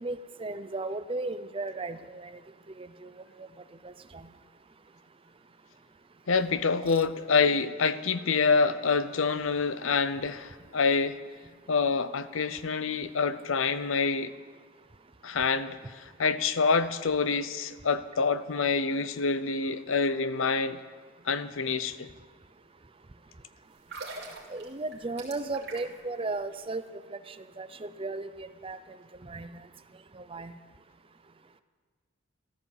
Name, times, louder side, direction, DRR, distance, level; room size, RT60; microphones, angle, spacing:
voice 1, 0.0-2.3 2.8-3.1 3.4-3.5 3.8-4.2 6.8-7.0 24.5-26.8 27.3-28.8 29.2-29.6 30.2-30.5, right 3 dB, 25° right, 0.6 m, -36 dB
voice 2, 6.3-11.2 11.7-14.3 15.2-20.8 21.3-22.1, left 4 dB, 70° left, 0.7 m, -27 dB
sound 1, 23.7-26.1 26.4-26.6, right 3 dB, 55° right, 2.8 m, -43 dB
14.0 x 13.5 x 7.3 m
head